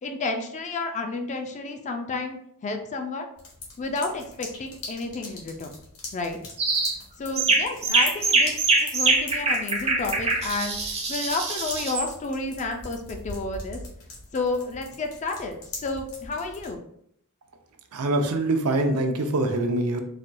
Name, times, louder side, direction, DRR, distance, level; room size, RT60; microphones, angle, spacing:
voice 1, 0.0-3.3 3.8-5.7 6.1-6.4 7.2-13.8 14.3-16.8, left 3 dB, 30° left, 5 dB, 0.4 m, -31 dB
sound 1, 3.4-16.8, left 3 dB, 70° left, 1.1 m, -42 dB
sound 2, 6.6-7.0 7.4-12.1, right 3 dB, 30° right, 0.5 m, -23 dB
voice 2, 17.9-20.0, right 2 dB, 75° right, 5 dB, 0.5 m, -24 dB
4.1 x 2.2 x 2.5 m, 0.71 s
head